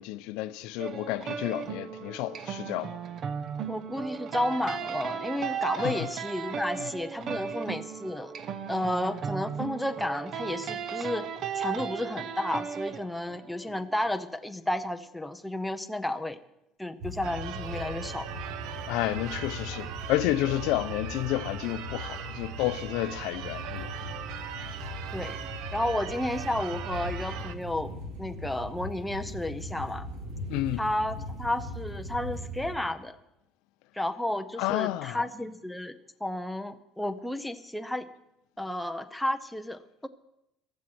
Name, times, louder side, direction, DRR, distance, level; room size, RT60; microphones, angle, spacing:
voice 1, 0.0-3.0 5.8-6.0 18.9-23.9 30.5-30.8 34.6-35.2, left 15 dB, 70° left, 0.7 m, -30 dB
sound 1, 0.8-14.0, right 7 dB, 35° right, 0.8 m, -36 dB
voice 2, 3.7-8.3 8.7-11.3 11.5-16.4 16.8-18.3 25.1-25.4 25.7-27.9 28.2-30.1 30.8-33.2 33.9-36.0 36.2-38.1 38.6-40.1, left 1 dB, 5° left, 0.6 m, -32 dB
sound 2, 17.0-32.7, left 1 dB, 85° right, 4.3 m, -39 dB
Church bell / Car / Alarm, 17.2-27.6, right 10 dB, 60° right, 0.9 m, -40 dB
15.0 x 13.0 x 6.1 m
cardioid pair, 175°, 0 cm